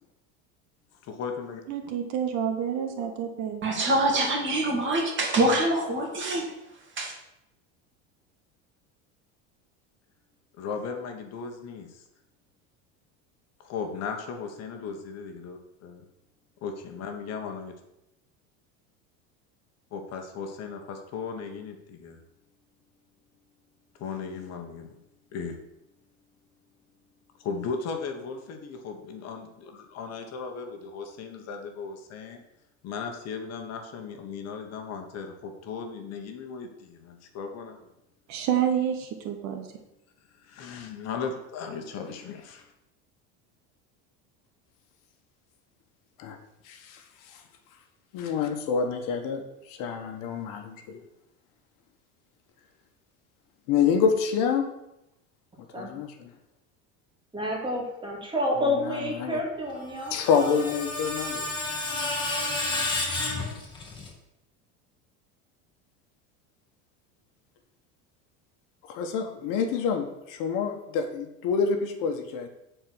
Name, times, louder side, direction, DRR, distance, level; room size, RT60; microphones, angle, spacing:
voice 1, 1.0-1.6 10.6-12.0 13.6-16.0 16.6-17.7 19.9-22.2 24.0-25.0 25.3-25.6 27.4-32.4 32.8-37.9 40.4-42.7, left 5 dB, 45° left, 4 dB, 1.3 m, -37 dB
voice 2, 1.7-3.6 38.3-39.7, right 9 dB, 50° right, 6 dB, 1.2 m, -28 dB
voice 3, 3.6-6.5 7.0-7.1, right 1 dB, 35° right, 1 dB, 2.3 m, -25 dB
voice 4, 46.6-47.4 48.1-51.0 53.7-54.7 55.8-56.1 58.9-59.4 60.1-61.4 62.7-62.9 68.9-72.5, left 6 dB, 65° left, 5 dB, 1.4 m, -27 dB
voice 5, 57.3-60.7, left 1 dB, 15° right, -2 dB, 2.6 m, -30 dB
Screech, 59.8-64.1, left 2 dB, 15° left, 2.1 m, -31 dB
8.8 x 4.6 x 6.2 m, 0.86 s
supercardioid pair, 130°, 35 cm